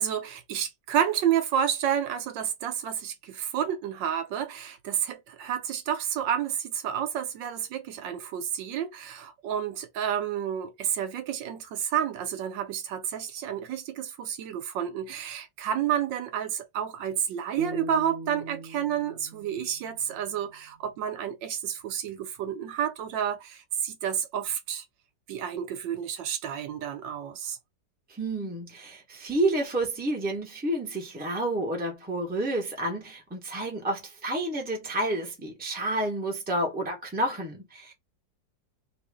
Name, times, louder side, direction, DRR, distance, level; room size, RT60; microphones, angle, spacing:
voice 1, 0.0-24.8 25.3-27.6, right 9 dB, 75° right, 1.3 m, -30 dB
sound 1, 17.6-20.7, right 2 dB, 60° right, 0.8 m, -39 dB
voice 2, 28.2-37.9, right 1 dB, 5° right, 0.8 m, -30 dB
3.0 x 2.4 x 3.4 m
omnidirectional pair, 2.0 m